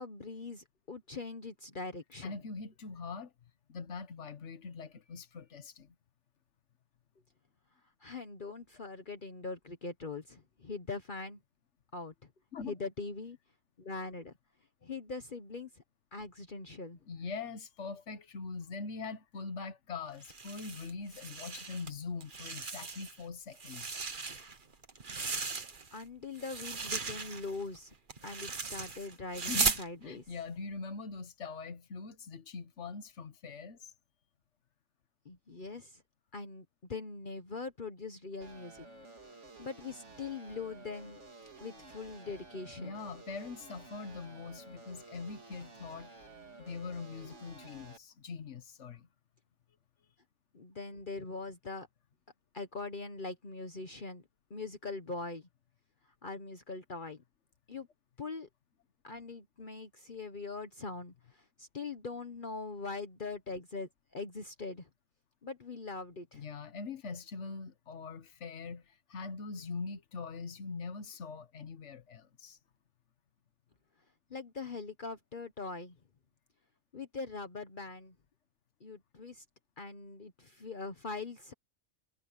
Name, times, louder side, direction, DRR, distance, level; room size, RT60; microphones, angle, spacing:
voice 1, 0.0-2.3 8.0-11.4 11.9-12.1 12.7-13.4 13.8-14.3 14.8-15.8 16.1-17.0 25.9-27.9 28.2-30.2 35.2-36.0 36.3-38.9 39.6-41.2 41.6-43.0 50.5-51.9 52.5-54.2 54.5-55.5 56.2-57.2 57.7-57.9 58.2-58.5 59.0-64.9 65.4-66.5 74.3-76.0 76.9-78.1 78.8-79.4 79.8-81.5, left 3 dB, 45° left, 1.3 m, -42 dB
voice 2, 2.2-3.3 3.7-5.9 12.5-12.7 17.1-24.0 29.5-33.9 42.8-46.1 46.6-49.1 66.3-72.6, left 4 dB, 80° left, 1.5 m, -42 dB
sound 1, 20.2-21.9 22.2-23.2 23.5-26.0 26.4-29.9, right 4 dB, 45° right, 1.5 m, -37 dB
sound 2, 38.4-48.0, right 3 dB, 80° right, 3.3 m, -53 dB
omnidirectional pair, 1.2 m